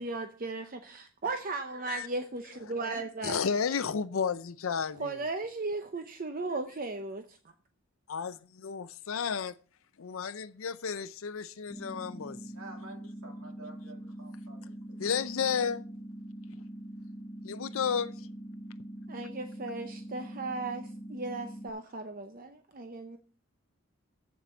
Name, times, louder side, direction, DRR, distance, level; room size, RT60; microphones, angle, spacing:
voice 1, 0.0-3.5 5.0-7.4 19.1-23.2, right 3 dB, 40° right, 0.7 m, -36 dB
voice 2, 3.2-5.2 8.1-9.5 10.0-12.4 15.0-15.8 17.4-18.1, left 6 dB, 70° left, 0.5 m, -32 dB
sound 1, 11.7-21.7, right 1 dB, 15° left, 0.6 m, -43 dB
voice 3, 12.5-15.3, right 2 dB, 80° right, 2.5 m, -51 dB
7.5 x 7.3 x 7.0 m
head